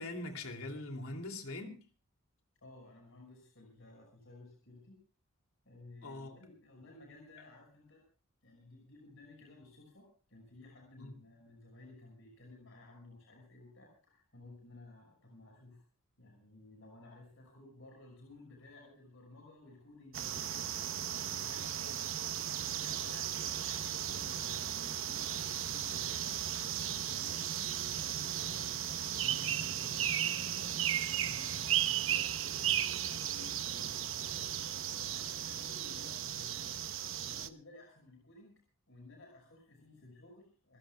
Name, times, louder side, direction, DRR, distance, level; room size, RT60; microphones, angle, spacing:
voice 1, 0.0-1.8 6.0-6.4 7.4-7.5 11.0-11.2, left 2 dB, 85° left, 2.9 m, -42 dB
voice 2, 2.6-5.0 5.7-8.0 8.4-15.8 16.2-22.1 22.5-26.2 26.6-30.5 30.9-34.5 34.9-36.8 37.2-38.6 38.9-40.8, left 2 dB, 65° left, 5.8 m, -56 dB
sound 1, 20.1-37.5, right 10 dB, 65° right, 0.9 m, -35 dB
27.0 x 16.0 x 2.4 m
head